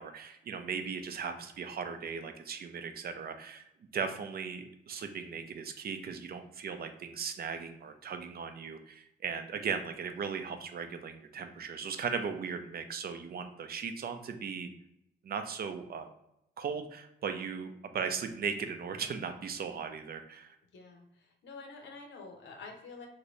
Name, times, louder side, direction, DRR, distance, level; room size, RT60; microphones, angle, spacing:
voice 1, 0.0-3.6 3.9-14.7 15.2-16.1 16.6-20.6, right 6 dB, 55° right, 7 dB, 0.4 m, -37 dB
voice 2, 20.7-23.1, left 4 dB, 80° left, 2 dB, 0.7 m, -48 dB
2.6 x 2.6 x 3.1 m, 0.81 s
cardioid pair, 90°, 19 cm